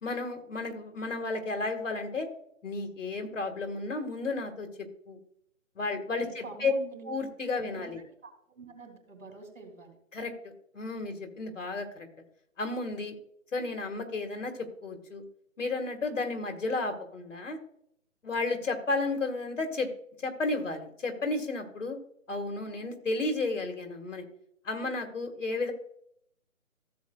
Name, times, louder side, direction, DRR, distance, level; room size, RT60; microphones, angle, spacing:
voice 1, 0.0-2.3 2.6-4.7 5.1-5.2 5.8-6.7 7.1-8.0 10.1-10.3 10.7-12.1 12.6-13.2 13.5-14.5 14.8-15.2 15.6-17.6 18.2-19.9 20.2-22.0 22.3-24.2 24.7-25.7, left 3 dB, 65° left, 5 dB, 2.0 m, -32 dB
voice 2, 6.2-7.1 7.7-7.9 8.2-10.0, right 4 dB, 75° right, 5 dB, 3.3 m, -46 dB
15.5 x 8.0 x 2.4 m, 0.71 s
figure-of-eight pair, 155°, 40 cm